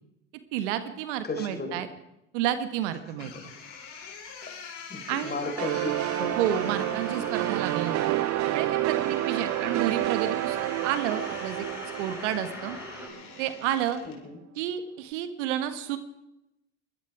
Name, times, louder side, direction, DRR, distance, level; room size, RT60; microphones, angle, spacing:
voice 1, 0.5-1.9 2.3-3.3 5.1-5.4 6.4-8.1 8.5-10.6 10.8-11.7 12.0-12.8 13.4-14.0 14.6-16.0, right 11 dB, 75° right, 10 dB, 1.4 m, -30 dB
voice 2, 1.2-1.8 3.0-3.1 4.9-6.5 9.4-9.8 14.0-14.4, left 3 dB, 25° left, 5 dB, 3.8 m, -35 dB
sound 1, 3.2-14.2, left 6 dB, 70° left, 4.8 m, -44 dB
sound 2, 5.6-13.1, right 17 dB, 50° right, 0.5 m, -29 dB
sound 3, 5.8-13.1, right 1 dB, 5° right, 3.4 m, -42 dB
20.5 x 13.0 x 4.7 m, 0.87 s
hypercardioid pair, 70°, 36 cm